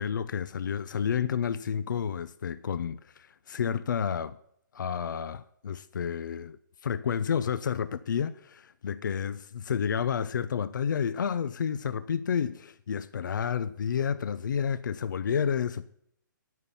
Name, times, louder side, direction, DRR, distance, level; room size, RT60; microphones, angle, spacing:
voice 1, 0.0-4.4 4.7-6.6 6.8-9.4 9.7-15.9, left 7 dB, 65° left, 0.6 m, -30 dB
10.0 x 9.3 x 7.0 m
hypercardioid pair, 165°, 11 cm